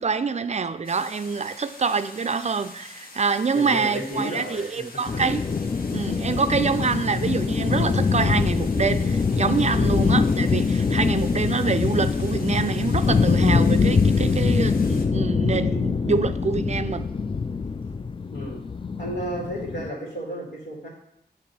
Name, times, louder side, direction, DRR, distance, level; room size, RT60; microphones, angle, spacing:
voice 1, 0.0-5.4 5.9-17.1, right 5 dB, 40° right, 0.4 m, -26 dB
sound 1, 0.8-15.1, left 2 dB, 60° left, 1.0 m, -45 dB
voice 2, 3.5-5.1 10.0-10.3 18.3-18.6 19.0-20.9, equal, 90° left, 2.0 m, -32 dB
sound 2, 5.1-19.9, left 5 dB, 30° left, 0.3 m, -23 dB
8.5 x 3.1 x 4.1 m
cardioid pair, 45°, 17 cm